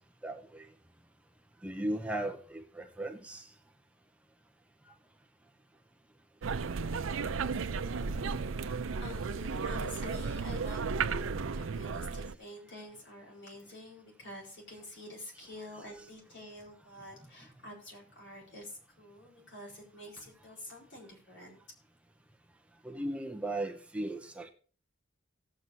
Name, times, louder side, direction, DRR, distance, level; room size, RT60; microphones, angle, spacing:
voice 1, 0.2-0.6 1.6-3.4 7.9-8.5 22.8-24.5, right 1 dB, 5° right, 0.6 m, -37 dB
sound 1, 6.4-12.3, right 5 dB, 85° right, 0.5 m, -34 dB
voice 2, 7.5-7.9 9.0-21.6, left 1 dB, 65° left, 4.5 m, -48 dB
18.0 x 7.8 x 2.7 m
head